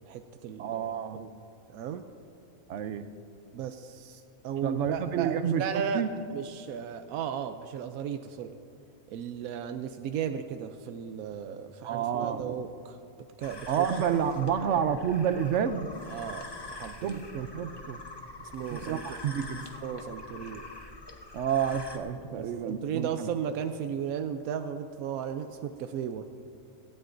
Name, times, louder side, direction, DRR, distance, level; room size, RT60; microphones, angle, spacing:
voice 1, 0.1-1.3 1.7-2.0 3.5-6.0 6.3-8.5 9.1-13.0 13.4-13.9 14.2-14.3 16.1-17.2 18.4-19.2 19.7-20.7 22.3-26.2, right 8 dB, 90° right, 7 dB, 1.0 m, -35 dB
voice 2, 0.6-1.2 2.7-3.1 4.6-6.1 11.8-12.5 13.7-15.9 17.0-18.0 18.8-19.7 21.3-23.3, right 8 dB, 65° right, 11 dB, 0.9 m, -29 dB
sound 1, 13.4-22.0, left 2 dB, 25° left, 0.7 m, -44 dB
17.5 x 15.5 x 2.6 m, 2.7 s
omnidirectional pair, 1.4 m